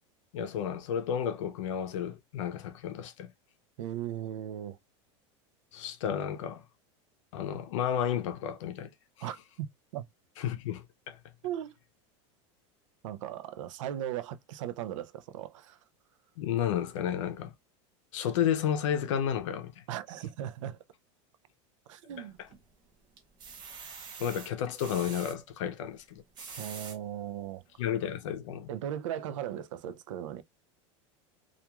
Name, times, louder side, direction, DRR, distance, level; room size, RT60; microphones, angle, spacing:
voice 1, 0.3-3.3 5.7-6.6 7.3-8.9 9.2-9.3 10.4-11.2 16.4-17.5 18.1-19.8 22.2-22.5 24.2-26.6 27.8-28.7, left 9 dB, 75° left, 0.6 m, -32 dB
voice 2, 3.8-4.8 9.2-9.7 9.9-10.1 11.4-11.7 13.0-15.8 19.9-20.8 21.9-22.4 26.6-27.6 28.7-30.4, right 11 dB, 85° right, 0.4 m, -37 dB
sound 1, 22.1-22.7 23.2-25.4 26.1-27.0 27.6-27.7 28.0-28.1, right 6 dB, 25° right, 0.6 m, -45 dB
2.4 x 2.3 x 2.9 m
supercardioid pair, 170°, 16 cm